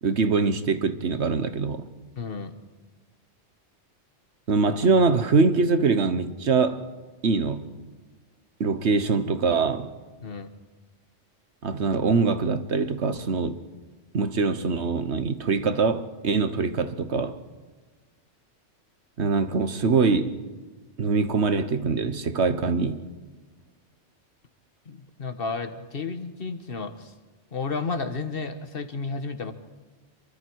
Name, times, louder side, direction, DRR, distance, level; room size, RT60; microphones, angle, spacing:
voice 1, 0.0-1.8 4.5-6.8 7.2-7.7 8.6-9.9 11.6-13.6 14.1-17.4 19.2-20.3 21.0-23.0, right 4 dB, 70° right, 1.4 m, -23 dB
voice 2, 2.2-2.6 10.2-10.5 24.9-27.1 27.5-29.5, left 4 dB, 50° left, 1.5 m, -32 dB
27.5 x 23.5 x 4.7 m
omnidirectional pair, 1.2 m